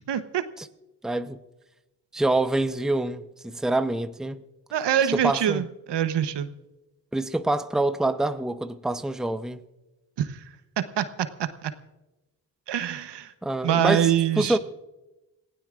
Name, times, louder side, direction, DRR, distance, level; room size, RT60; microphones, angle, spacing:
voice 1, 0.1-0.4 4.7-6.5 10.2-10.4 10.8-11.7 12.7-13.3 13.6-14.6, right 10 dB, 60° right, 1.0 m, -25 dB
voice 2, 1.0-1.4 2.1-4.4 5.1-5.6 7.1-9.6 13.4-14.1 14.4-14.6, right 2 dB, ahead, 0.8 m, -26 dB
28.0 x 16.0 x 2.5 m
hypercardioid pair, 45°, 47 cm